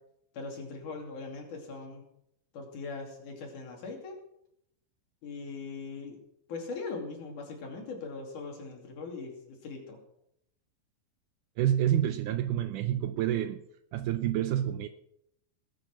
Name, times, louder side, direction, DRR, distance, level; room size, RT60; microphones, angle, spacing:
voice 1, 0.3-2.0 2.5-4.2 5.2-6.2 6.5-10.0, left 4 dB, 60° left, 4.0 m, -40 dB
voice 2, 11.6-13.6 13.9-14.9, right 11 dB, 75° right, 2.0 m, -28 dB
19.0 x 8.0 x 6.0 m
omnidirectional pair, 4.1 m